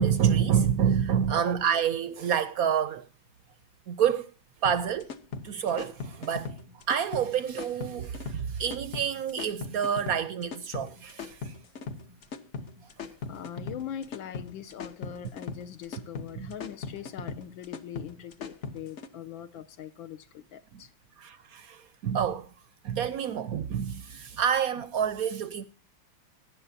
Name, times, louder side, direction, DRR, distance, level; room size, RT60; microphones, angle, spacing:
voice 1, 0.0-3.1 3.9-4.3 4.6-5.1 5.4-11.5 16.3-16.5 20.7-20.8 21.2-22.5 22.8-25.6, right 8 dB, 70° right, 0.8 m, -28 dB
sound 1, 4.6-19.1, left 5 dB, 55° left, 0.8 m, -39 dB
voice 2, 13.3-20.9, left 10 dB, 75° left, 1.5 m, -41 dB
17.5 x 10.0 x 2.6 m
omnidirectional pair, 2.2 m